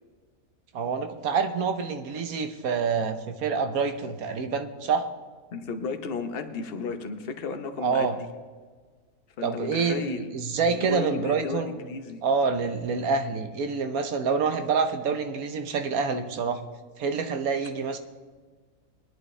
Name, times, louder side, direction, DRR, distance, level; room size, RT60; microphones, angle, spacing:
voice 1, 0.7-5.1 7.8-8.2 9.4-16.6 17.0-18.0, right 5 dB, 85° right, 7 dB, 1.4 m, -27 dB
voice 2, 5.5-8.1 9.4-10.3 10.7-12.2, left 5 dB, 45° left, 7 dB, 1.1 m, -34 dB
20.0 x 11.0 x 3.3 m, 1.5 s
omnidirectional pair, 1.5 m